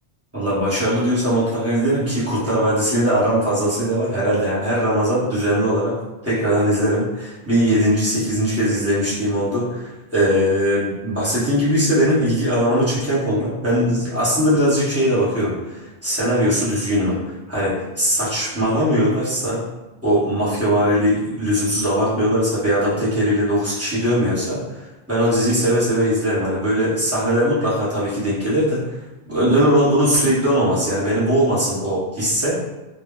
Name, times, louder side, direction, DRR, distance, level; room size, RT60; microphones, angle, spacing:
voice 1, 0.3-5.9 6.2-19.6 20.0-29.0 29.3-32.6, equal, 15° right, -10 dB, 1.0 m, -20 dB
2.1 x 2.1 x 3.7 m, 1.1 s
omnidirectional pair, 1.1 m